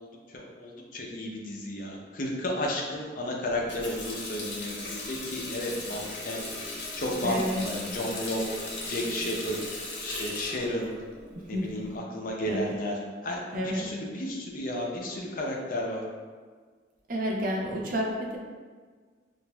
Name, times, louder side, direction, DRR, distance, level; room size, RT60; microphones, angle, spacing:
voice 1, 0.0-9.6 10.0-10.9 11.5-16.0, left 1 dB, 50° left, -1 dB, 0.6 m, -33 dB
Water tap faucet, 3.5-11.9, left 2 dB, 85° left, 0.9 m, -38 dB
voice 2, 7.2-7.7 11.5-11.9 12.5-12.8 13.5-13.8 17.1-18.4, equal, 50° right, -1 dB, 0.6 m, -30 dB
5.9 x 2.5 x 2.2 m, 1.5 s
head